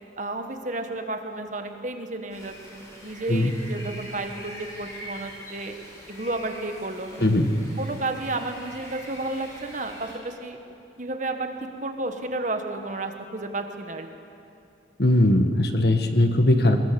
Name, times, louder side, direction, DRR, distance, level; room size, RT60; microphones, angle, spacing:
voice 1, 0.2-5.7 6.1-7.3 7.8-10.6 11.0-11.5 11.8-14.1, right 2 dB, 40° right, 6 dB, 1.5 m, -32 dB
sound 1, 2.3-10.2, equal, 15° left, 5.5 m, -44 dB
voice 2, 3.3-3.6 7.2-7.5 15.0-16.8, left 1 dB, 60° left, 6 dB, 1.5 m, -20 dB
22.5 x 20.5 x 7.0 m, 2.7 s
head